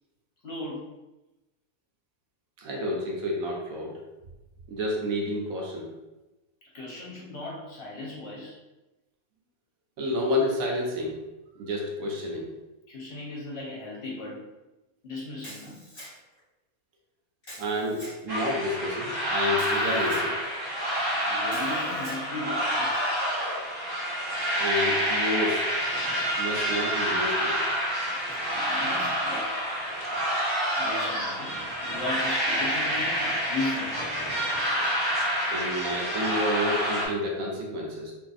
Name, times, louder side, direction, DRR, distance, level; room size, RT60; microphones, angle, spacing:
voice 1, 0.4-0.9 6.7-8.6 12.9-14.4 15.0-15.8 21.3-22.9 28.5-29.5 30.8-34.1, left 2 dB, 55° left, -5 dB, 0.9 m, -36 dB
voice 2, 2.6-4.0 4.7-5.9 10.0-11.2 11.6-12.5 17.6-20.4 24.6-25.7 26.4-27.6 35.5-38.1, left 1 dB, 75° right, -1 dB, 1.0 m, -29 dB
Camera, 15.4-16.4 17.4-18.2 19.5-20.3 21.5-22.2, equal, 25° left, 1.0 m, -45 dB
sound 1, 18.3-37.1, equal, 30° right, 0.4 m, -28 dB
2.6 x 2.5 x 2.4 m, 1.0 s
omnidirectional pair, 1.5 m